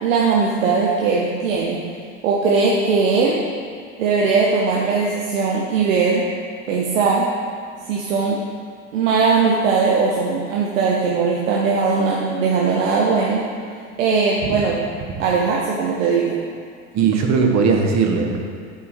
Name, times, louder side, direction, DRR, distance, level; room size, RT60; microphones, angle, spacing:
voice 1, 0.0-1.8 2.2-3.4 4.0-6.3 6.7-7.4 7.9-8.4 8.9-13.5 14.0-14.8 15.2-16.4, right 4 dB, 85° right, -3 dB, 1.0 m, -19 dB
voice 2, 16.9-18.4, right 5 dB, 45° right, 2 dB, 1.3 m, -18 dB
8.5 x 4.7 x 5.4 m, 2.3 s
hypercardioid pair, 85°, 38 cm